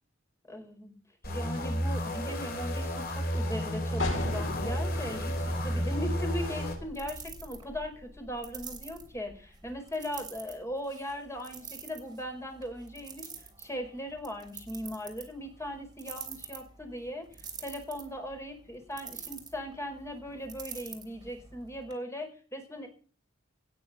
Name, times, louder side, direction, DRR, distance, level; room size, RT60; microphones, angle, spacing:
voice 1, 0.5-1.0 1.3-13.3 13.6-17.3 17.6-22.9, equal, 15° left, 4 dB, 4.7 m, -39 dB
sound 1, 1.2-6.8, equal, 50° left, 4.5 m, -32 dB
sound 2, 4.0-9.5, left 2 dB, 75° left, 7.2 m, -39 dB
sound 3, 5.1-21.9, right 6 dB, 20° right, 3.1 m, -48 dB
18.5 x 6.9 x 7.9 m, 0.40 s
head